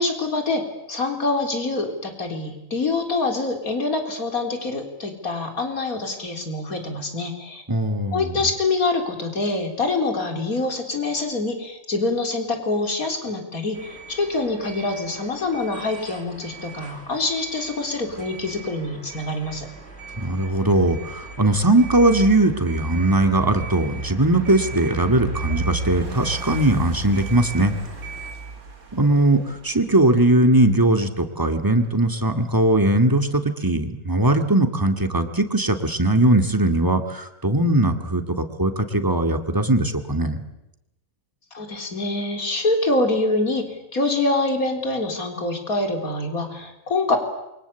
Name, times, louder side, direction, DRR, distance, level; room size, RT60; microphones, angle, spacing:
voice 1, 0.0-7.6 8.1-19.7 41.5-47.2, left 2 dB, 90° left, 5 dB, 4.4 m, -25 dB
voice 2, 7.7-8.4 20.2-27.8 28.9-40.4, right 1 dB, 15° right, 7 dB, 2.2 m, -20 dB
sound 1, 13.7-28.3, right 5 dB, 50° right, 4.8 m, -41 dB
sound 2, 18.1-32.8, right 2 dB, 85° right, 2.9 m, -35 dB
28.0 x 24.0 x 8.3 m, 0.92 s
omnidirectional pair, 1.5 m